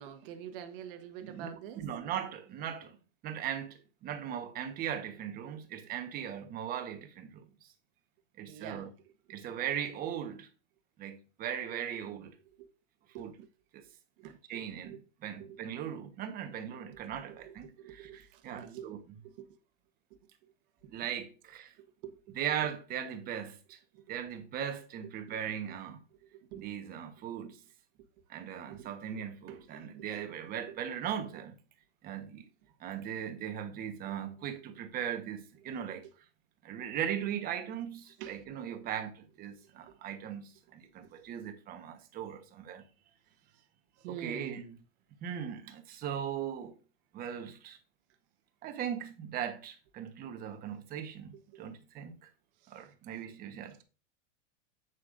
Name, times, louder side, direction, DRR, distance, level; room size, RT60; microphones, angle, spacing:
voice 1, 0.0-1.8 8.5-8.9 12.6-12.7 13.1-13.5 14.2-15.0 15.4-15.6 17.4-18.9 19.2-19.5 20.9-21.0 21.8-22.4 23.9-24.0 25.3-25.4 26.3-26.7 28.7-28.9 29.2-30.1 30.7-30.8 34.1-34.2 35.7-36.0 38.2-38.4 44.0-44.8 51.5-51.6 52.6-52.8, right 9 dB, 45° right, 1.4 m, -47 dB
voice 2, 1.7-3.0 3.2-7.7 8.4-8.9 9.3-10.5 11.0-12.3 13.2-13.3 13.7-13.8 14.2-19.0 20.9-21.7 22.3-23.8 24.1-26.0 26.5-27.6 28.3-31.6 32.0-32.5 32.8-36.1 36.6-42.8 44.1-44.6 45.2-46.8 47.1-47.8 48.6-52.3 52.7-53.8, right 9 dB, 25° right, 1.1 m, -39 dB
8.3 x 8.2 x 2.6 m
supercardioid pair, 155°, 40 cm